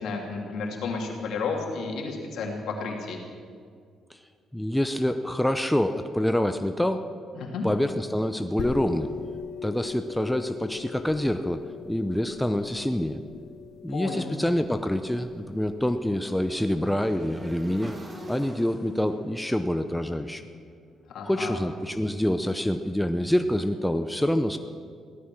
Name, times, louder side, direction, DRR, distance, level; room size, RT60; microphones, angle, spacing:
voice 1, 0.0-3.2 7.3-7.7 13.9-14.4 21.1-21.6, left 4 dB, 75° left, 0 dB, 2.9 m, -32 dB
voice 2, 4.5-7.1 7.6-9.1 9.6-13.2 13.8-18.0 18.3-20.4 21.2-24.6, left 1 dB, 5° left, 7 dB, 0.7 m, -26 dB
sound 1, 8.6-17.9, left 6 dB, 60° left, 0.9 m, -41 dB
Motorcycle / Engine, 14.9-21.0, right 1 dB, 25° right, 2.3 m, -46 dB
16.5 x 12.5 x 6.2 m, 2.1 s
cardioid pair, 90°, 0 cm